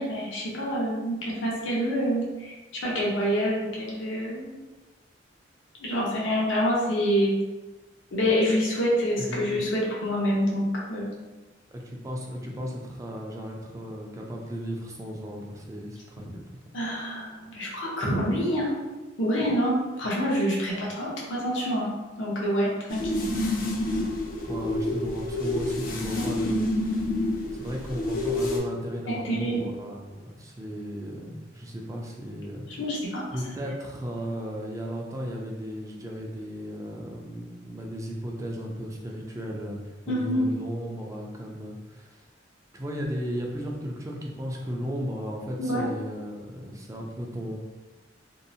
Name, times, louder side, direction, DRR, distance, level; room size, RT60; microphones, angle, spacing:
voice 1, 0.0-4.6 5.8-7.3 8.1-11.1 16.7-18.8 19.2-23.1 26.2-26.3 29.1-29.6 32.7-33.4 40.1-40.5 45.6-45.9, equal, 90° left, -4 dB, 0.8 m, -27 dB
voice 2, 11.7-16.4 24.5-27.1 27.5-32.7 33.3-42.3 42.7-47.6, equal, 15° right, -1 dB, 0.3 m, -35 dB
sound 1, 22.9-28.6, left 1 dB, 50° left, 0.4 m, -28 dB
2.6 x 2.0 x 2.6 m, 1.2 s
head